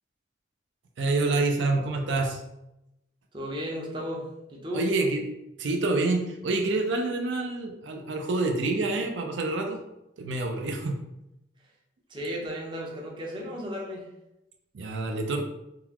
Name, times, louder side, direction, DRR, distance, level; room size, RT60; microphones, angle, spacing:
voice 1, 1.0-2.4 4.7-5.2 5.6-9.8 10.2-11.0 14.7-15.4, right 2 dB, 85° right, 3 dB, 0.5 m, -27 dB
voice 2, 3.3-4.9 12.1-14.1, equal, 25° right, -2 dB, 0.6 m, -34 dB
3.8 x 2.3 x 2.9 m, 0.88 s
head